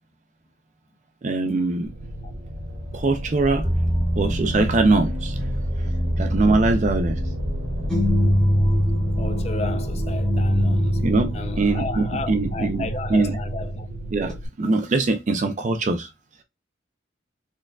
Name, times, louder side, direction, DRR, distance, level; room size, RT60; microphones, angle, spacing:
voice 1, 1.2-1.9 2.9-3.7 4.2-5.4 6.2-7.2 11.0-13.4 14.1-16.1, right 3 dB, 40° right, 0.4 m, -22 dB
sound 1, 1.8-14.5, equal, 60° right, 1.2 m, -30 dB
sound 2, 3.6-14.3, equal, 5° left, 2.1 m, -25 dB
voice 2, 9.2-11.0 11.3-13.9, left 3 dB, 30° left, 0.4 m, -33 dB
4.4 x 3.5 x 2.3 m
head